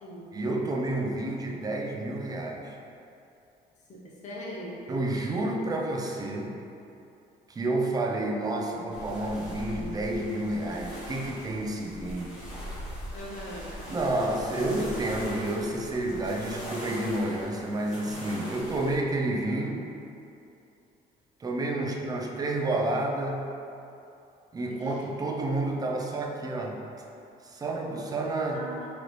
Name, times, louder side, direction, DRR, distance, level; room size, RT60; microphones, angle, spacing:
voice 1, 0.3-2.8 4.9-6.6 7.5-12.4 13.9-19.9 21.4-23.5 24.5-26.8 27.4-28.7, right 2 dB, 20° right, 0 dB, 0.4 m, -30 dB
voice 2, 3.9-4.7 13.1-13.7 24.7-24.9 28.5-28.9, equal, 45° left, -5 dB, 1.0 m, -40 dB
sound 1, 8.9-19.0, equal, 5° right, 1.0 m, -41 dB
3.8 x 3.0 x 3.2 m, 2.7 s
cardioid pair, 110°, 17 cm